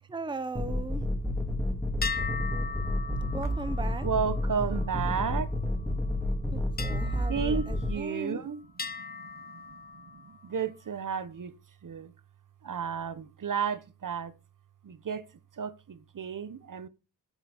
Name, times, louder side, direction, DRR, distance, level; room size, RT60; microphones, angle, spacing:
voice 1, 0.1-1.1 3.3-4.1 6.5-8.4, right 3 dB, 10° right, 0.8 m, -38 dB
sound 1, 0.5-7.9, left 1 dB, 5° left, 2.6 m, -30 dB
sound 2, 2.0-5.7 6.8-8.3 8.8-10.5, left 5 dB, 25° left, 0.7 m, -40 dB
voice 2, 2.4-3.4 4.0-6.6 7.3-11.5 11.8-12.1 12.6-14.3 14.8-15.3 15.5-16.9, right 7 dB, 50° right, 1.0 m, -34 dB
10.5 x 8.0 x 5.1 m
wide cardioid pair, 145°, 41 cm